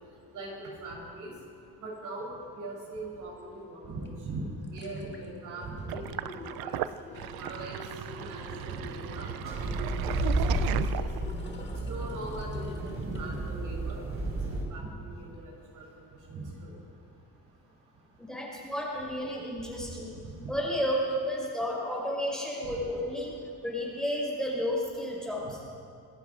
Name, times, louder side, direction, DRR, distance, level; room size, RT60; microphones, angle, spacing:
voice 1, 0.3-1.3 1.8-4.4 4.7-6.7 7.4-7.8 8.2-10.4 10.7-11.1 11.8-14.0 14.5-15.9 16.3-16.7 20.4-20.5 22.6-22.7, right 2 dB, 60° right, -3 dB, 7.6 m, -40 dB
sound 1, 4.1-4.2 4.5-13.5 13.9-14.0, left 2 dB, 30° left, 2.3 m, -47 dB
Sink (filling or washing), 5.9-11.5, right 13 dB, 80° right, 0.7 m, -36 dB
sound 2, 9.5-14.6, right 1 dB, 35° right, 5.5 m, -32 dB
voice 2, 18.2-20.2 20.5-23.3 23.6-25.7, equal, ahead, -4 dB, 5.4 m, -32 dB
27.5 x 20.0 x 5.0 m, 2.4 s
cardioid pair, 145°, 36 cm